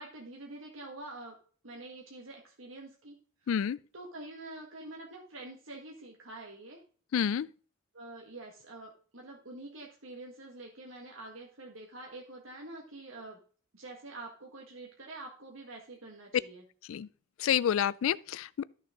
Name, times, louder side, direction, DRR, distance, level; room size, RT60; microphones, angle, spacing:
voice 1, 0.0-1.4 1.6-3.2 3.4-3.5 3.9-6.8 7.9-13.4 13.7-16.6, right 2 dB, 70° right, 1.8 m, -46 dB
voice 2, 3.5-3.8 7.1-7.5 16.9-17.1 17.4-18.6, left 9 dB, 70° left, 0.3 m, -29 dB
13.0 x 6.5 x 3.9 m
head